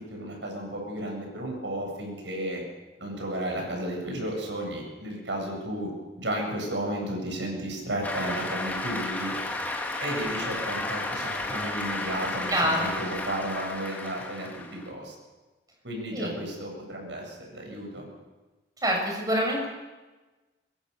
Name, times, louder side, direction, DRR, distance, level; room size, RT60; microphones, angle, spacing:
voice 1, 0.0-2.6 3.0-5.9 6.2-9.3 10.0-15.1 15.8-18.0, right 1 dB, 90° right, 1 dB, 7.9 m, -33 dB
Cheering / Applause, 8.0-14.9, left 2 dB, 10° left, 2.6 m, -33 dB
voice 2, 12.5-12.9 16.1-16.4 18.8-19.7, equal, 20° right, 0 dB, 7.3 m, -26 dB
24.0 x 21.5 x 7.0 m, 1.2 s
head